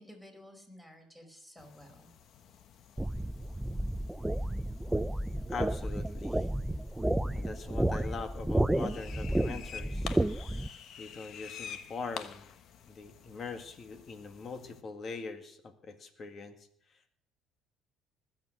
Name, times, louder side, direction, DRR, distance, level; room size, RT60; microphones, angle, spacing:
voice 1, 0.0-2.1, left 1 dB, 10° left, 3 dB, 4.8 m, -53 dB
sound 1, 1.6-14.8, left 8 dB, 60° left, 1.1 m, -50 dB
sound 2, 3.0-10.7, right 1 dB, 10° right, 0.5 m, -31 dB
voice 2, 5.5-6.5 7.3-10.2 11.0-12.5 12.9-16.6, left 4 dB, 45° left, 8 dB, 2.0 m, -42 dB
20.0 x 7.6 x 6.4 m, 0.65 s
supercardioid pair, 85°, 0 cm